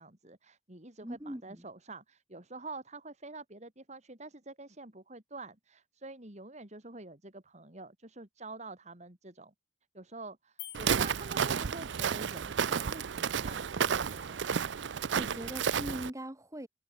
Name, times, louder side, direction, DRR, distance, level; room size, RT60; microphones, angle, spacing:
voice 1, 0.0-9.5 9.9-14.4, right 3 dB, 40° right, 2.9 m, -47 dB
voice 2, 1.0-1.7 15.2-16.7, equal, 15° right, 2.6 m, -41 dB
sound 1, 10.6-12.1, left 17 dB, 65° left, 3.6 m, -50 dB
Walk footsteps, 10.7-16.1, right 7 dB, 75° right, 0.5 m, -31 dB
head